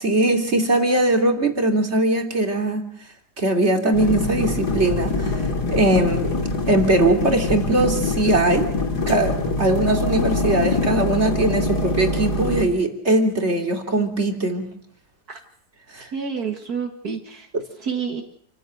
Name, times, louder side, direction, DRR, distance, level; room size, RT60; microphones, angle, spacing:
voice 1, 0.0-2.8 3.4-5.3 5.7-8.7 9.1-14.7 15.9-16.1 17.5-17.6, right 1 dB, 40° right, 4 dB, 3.4 m, -20 dB
sound 1, 3.9-12.6, left 2 dB, 80° left, 3.8 m, -24 dB
voice 2, 16.1-17.5 17.8-18.2, right 6 dB, 65° right, 3 dB, 2.5 m, -28 dB
29.0 x 14.5 x 7.9 m, 0.65 s
omnidirectional pair, 1.7 m